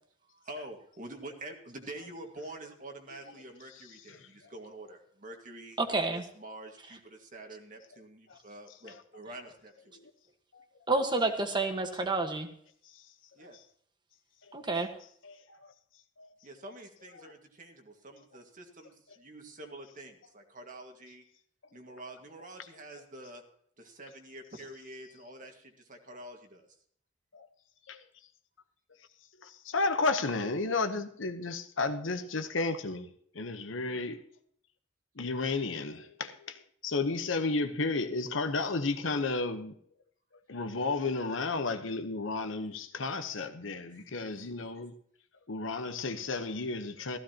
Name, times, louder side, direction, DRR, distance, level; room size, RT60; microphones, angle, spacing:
voice 1, 0.3-9.7 13.4-13.6 16.4-21.2 21.7-23.4 23.8-26.7 43.9-44.0, right 1 dB, 45° right, 1.9 m, -47 dB
voice 2, 3.7-4.5 8.3-8.4 8.9-9.0 9.9-10.1 10.5-10.6 12.8-13.6 14.4-14.6 15.2-15.7 16.2-16.3 17.2-17.3 22.6-23.0 27.3-27.5 27.9-28.3 29.0-29.1 29.4-34.2 35.1-39.8 40.5-45.0 45.5-47.2, left 3 dB, 75° left, 1.0 m, -33 dB
voice 3, 5.8-6.2 10.9-12.5 14.5-14.9, right 3 dB, 25° right, 1.4 m, -29 dB
15.0 x 14.5 x 2.9 m
head